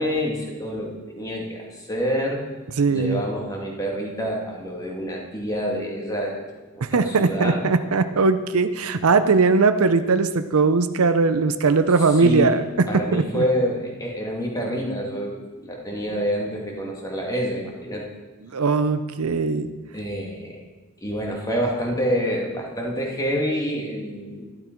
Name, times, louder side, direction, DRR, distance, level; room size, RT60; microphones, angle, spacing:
voice 1, 0.0-2.5 2.9-7.6 12.2-12.6 12.9-18.1 19.9-20.6 21.0-24.5, equal, 15° left, -1 dB, 2.0 m, -27 dB
voice 2, 2.8-3.2 6.8-13.4 18.4-19.7, right 4 dB, 75° right, 11 dB, 0.6 m, -20 dB
12.0 x 12.0 x 4.5 m, 1.2 s
head